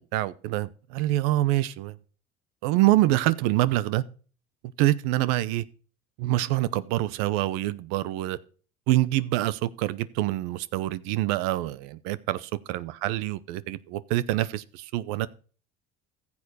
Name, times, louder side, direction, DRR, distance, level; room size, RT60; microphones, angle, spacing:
voice 1, 0.1-2.0 2.6-4.0 4.8-5.6 6.2-8.4 8.9-15.3, right 16 dB, 85° right, 0.8 m, -26 dB
15.0 x 7.2 x 4.2 m
supercardioid pair, 105°, 21 cm